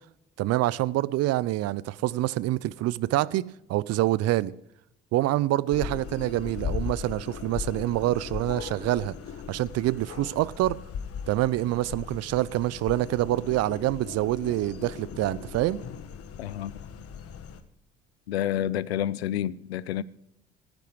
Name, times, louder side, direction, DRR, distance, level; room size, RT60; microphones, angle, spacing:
voice 1, 0.4-4.5 5.1-9.2 9.5-10.8 11.3-15.8, right 15 dB, 55° right, 0.6 m, -26 dB
sound 1, 5.7-17.6, left 7 dB, 50° left, 1.4 m, -38 dB
voice 2, 16.4-16.8 18.3-20.0, left 11 dB, 90° left, 0.5 m, -29 dB
14.5 x 10.5 x 4.8 m
hypercardioid pair, 55°, 30 cm